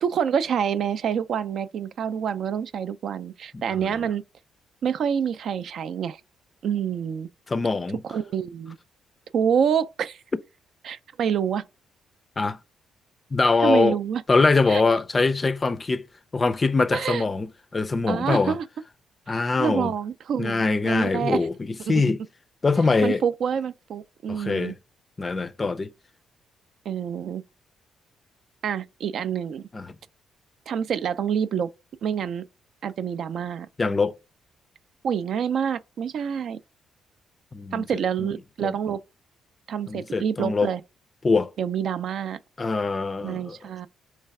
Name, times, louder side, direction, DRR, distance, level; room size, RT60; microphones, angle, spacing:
voice 1, 0.0-4.2 4.8-6.2 6.6-7.3 8.0-8.8 9.3-10.2 10.8-11.6 13.6-14.2 14.7-15.0 16.9-17.2 18.1-18.7 19.6-21.5 21.9-22.0 23.0-24.8 26.9-27.4 28.6-29.7 30.7-31.7 32.0-32.5 32.8-33.7 35.0-36.6 37.7-39.0 39.7-40.8 41.6-42.4 43.2-43.9, right 8 dB, 65° right, 0.3 m, -27 dB
voice 2, 7.5-8.0 12.4-12.6 13.3-14.0 14.3-16.0 16.3-17.5 17.7-18.6 19.3-19.9 20.4-21.5 21.9-22.2 22.6-23.2 24.3-24.7 25.2-25.9 29.7-29.9 33.8-34.1 37.5-37.8 38.2-38.3 38.6-38.7 39.9-40.7 41.2-41.5 42.6-43.6, left 3 dB, 30° left, 0.4 m, -23 dB
3.2 x 3.1 x 4.7 m
cardioid pair, 90°, 0 cm